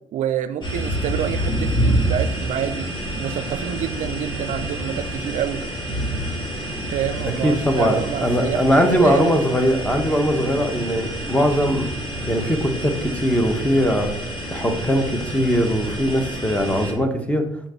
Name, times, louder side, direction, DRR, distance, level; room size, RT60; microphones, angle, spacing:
voice 1, 0.1-2.9 3.2-5.6 6.9-9.3, right 9 dB, 60° right, 10 dB, 0.4 m, -27 dB
sound 1, 0.6-16.9, right 1 dB, 35° left, 2.6 m, -28 dB
voice 2, 7.4-11.9 12.3-14.1 14.5-17.4, equal, 10° left, 5 dB, 1.2 m, -20 dB
6.3 x 5.3 x 3.1 m, 0.73 s
hypercardioid pair, 60°, 14 cm